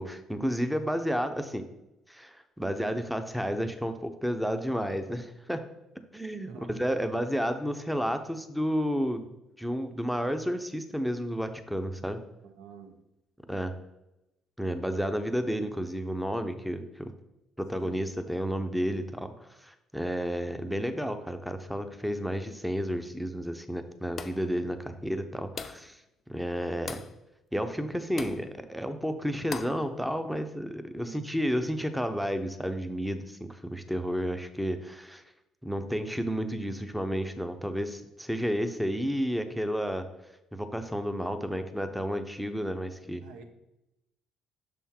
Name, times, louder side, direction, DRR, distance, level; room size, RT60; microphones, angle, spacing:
voice 1, 0.0-1.7 2.1-5.6 6.1-9.3 9.6-12.2 13.5-13.8 14.6-17.1 17.6-26.0 26.3-27.0 27.5-35.2 35.6-40.1 40.5-43.2, equal, ahead, 8 dB, 0.6 m, -31 dB
voice 2, 12.4-13.0 17.7-18.0 31.0-31.3 43.2-43.4, right 6 dB, 80° right, 6 dB, 0.7 m, -48 dB
sound 1, 24.2-24.5 25.6-25.9 26.9-27.2 28.2-28.5 29.5-29.8, left 5 dB, 45° left, 0.4 m, -39 dB
6.3 x 3.6 x 4.3 m, 0.92 s
supercardioid pair, 70°, 0 cm